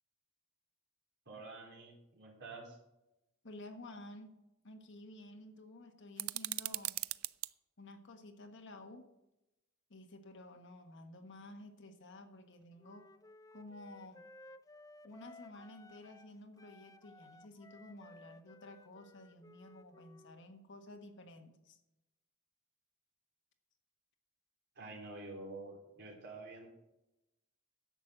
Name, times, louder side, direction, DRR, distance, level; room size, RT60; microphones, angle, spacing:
voice 1, 1.3-2.8 24.8-26.7, right 2 dB, 55° right, 0 dB, 3.6 m, -48 dB
voice 2, 3.4-4.4 4.6-7.0 7.8-9.1 9.9-13.1 13.5-14.3 15.0-21.8, left 1 dB, 60° left, 5 dB, 1.4 m, -52 dB
sound 1, 6.2-7.5, right 17 dB, 80° right, 0.4 m, -39 dB
Wind instrument woodwind instrument, 12.8-16.3 16.6-20.4, left 2 dB, 15° left, 0.4 m, -58 dB
11.0 x 7.5 x 6.5 m, 0.92 s
head